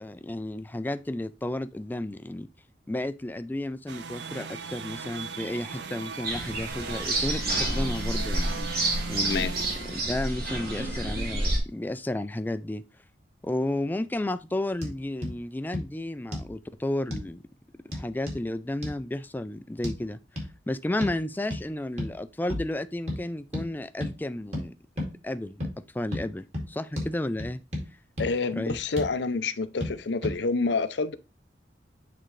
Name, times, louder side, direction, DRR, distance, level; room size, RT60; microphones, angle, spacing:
voice 1, 0.0-2.5 2.9-9.5 9.9-12.8 13.4-17.4 17.9-20.2 20.7-24.7 25.2-27.6 28.6-28.8, left 1 dB, 10° left, 0.3 m, -32 dB
sound 1, 3.9-10.9, right 5 dB, 75° right, 0.5 m, -39 dB
sound 2, 6.2-11.6, right 1 dB, 60° right, 2.0 m, -29 dB
sound 3, 14.8-14.9 15.2-15.3 15.7-15.9 16.3-16.5 17.1-17.3 17.9-18.4 18.8-19.0 19.8-20.0 20.4-20.5 21.0-21.2 21.5-21.6 22.0-22.2 22.5-22.7 23.1-23.2 23.5-23.7 24.0-24.1 24.5-24.7 25.0-25.1 25.6-25.7 26.1-26.3 26.5-26.7 27.0-27.1 27.4-27.9 28.2-28.3 28.7-29.1 29.8-29.9 30.2-30.4, left 1 dB, 40° right, 2.2 m, -32 dB
voice 2, 28.2-31.1, left 4 dB, 80° left, 0.5 m, -28 dB
8.8 x 3.7 x 3.2 m
head